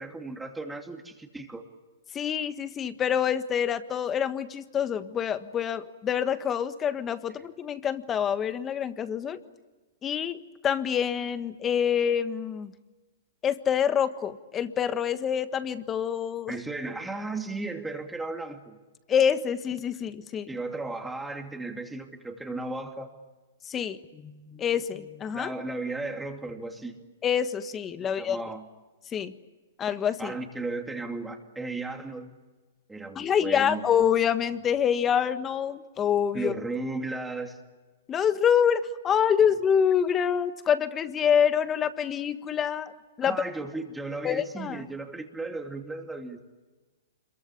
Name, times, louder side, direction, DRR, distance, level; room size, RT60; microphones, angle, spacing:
voice 1, 0.0-1.6 16.5-18.8 20.5-23.1 25.3-27.0 28.2-28.7 30.2-32.3 32.9-33.8 36.3-37.6 43.2-46.4, right 3 dB, 5° right, 4 dB, 2.6 m, -35 dB
voice 2, 2.1-9.4 10.0-10.4 10.6-12.7 13.4-16.6 19.1-20.5 23.6-25.5 27.2-28.4 29.1-29.3 29.8-30.4 33.1-36.5 38.1-42.9 43.2-43.4 44.2-44.8, left 8 dB, 20° left, 11 dB, 1.5 m, -26 dB
26.5 x 22.5 x 8.4 m, 1.2 s
hypercardioid pair, 130°, 0 cm